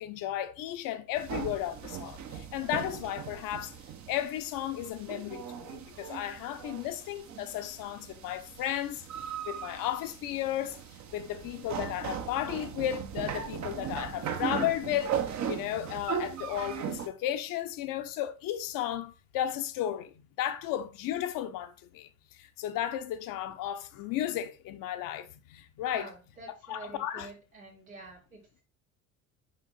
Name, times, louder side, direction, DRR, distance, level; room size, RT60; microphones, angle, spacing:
voice 1, 0.0-3.7 4.1-10.8 11.1-22.1 22.4-26.1 26.7-27.3, left 12 dB, 50° left, 0.8 m, -34 dB
sound 1, 1.2-17.1, right 8 dB, 40° right, 0.9 m, -38 dB
voice 2, 25.9-28.6, right 3 dB, 85° right, 2.3 m, -47 dB
5.2 x 5.2 x 4.0 m
figure-of-eight pair, 55°, 42 cm